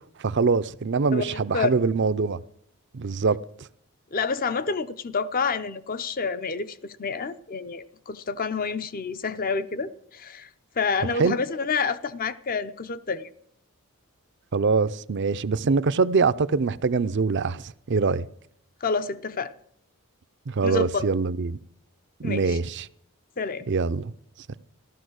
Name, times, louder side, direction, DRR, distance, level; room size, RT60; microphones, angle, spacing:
voice 1, 0.2-2.4 2.9-3.4 11.2-11.4 14.5-18.3 20.5-21.6 22.2-22.9 23.7-24.1, right 4 dB, 50° right, 0.5 m, -23 dB
voice 2, 1.1-1.7 4.1-10.5 10.8-13.3 18.8-19.5 20.6-21.0 22.2-22.6 23.4-23.7, left 5 dB, 40° left, 0.6 m, -28 dB
14.5 x 13.0 x 6.4 m
head